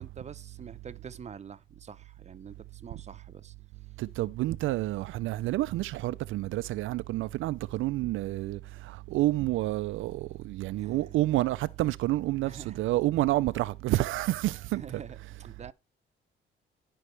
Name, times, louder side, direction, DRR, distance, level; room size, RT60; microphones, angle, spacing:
voice 1, 0.0-3.5 10.7-11.1 12.4-12.8 14.7-15.7, right 6 dB, 35° right, 0.8 m, -46 dB
voice 2, 4.0-15.0, right 17 dB, 80° right, 0.4 m, -29 dB
16.0 x 5.4 x 3.3 m
cardioid pair, 90°, 20 cm